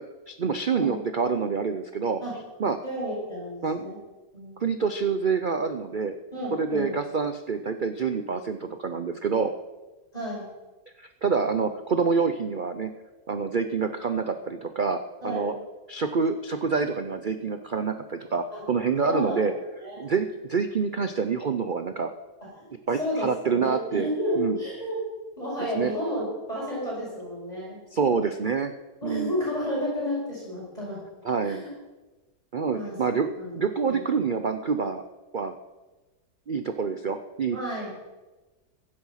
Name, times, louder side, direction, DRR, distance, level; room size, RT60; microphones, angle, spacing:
voice 1, 0.3-2.2 2.6-2.8 3.6-3.8 4.6-6.2 6.5-9.5 11.0-12.9 13.3-15.5 15.9-19.5 20.0-22.1 22.9-24.1 24.4-24.6 25.7-25.9 27.9-28.7 29.0-29.3 31.2-31.6 32.5-35.0 35.3-35.5 36.5-37.6, right 5 dB, 85° right, 8 dB, 0.4 m, -27 dB
voice 2, 2.8-4.0 4.3-4.6 6.3-6.9 10.1-10.5 15.2-15.6 19.0-19.5 19.8-20.1 22.4-22.7 22.9-25.0 25.4-27.8 29.0-31.0 31.4-31.7 32.7-33.0 33.4-33.5 33.9-34.0 37.5-37.9, equal, 20° left, -6 dB, 5.7 m, -31 dB
16.0 x 11.0 x 5.7 m, 1.2 s
omnidirectional pair, 1.9 m